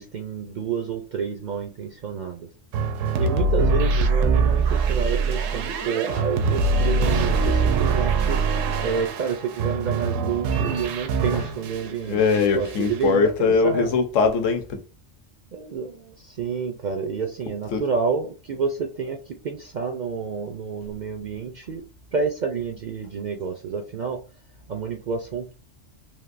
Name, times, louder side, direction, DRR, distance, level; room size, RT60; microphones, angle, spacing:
voice 1, 0.0-2.5 3.2-8.4 8.8-12.2 12.5-13.9 15.5-21.8 22.1-24.2 24.7-25.5, right 5 dB, 65° right, 0.4 m, -29 dB
sound 1, 2.7-11.9 12.2-13.0, right 4 dB, 85° right, 0.9 m, -23 dB
voice 2, 12.1-14.8 17.7-17.8, left 5 dB, 80° left, 1.0 m, -21 dB
3.4 x 2.6 x 2.5 m
omnidirectional pair, 1.3 m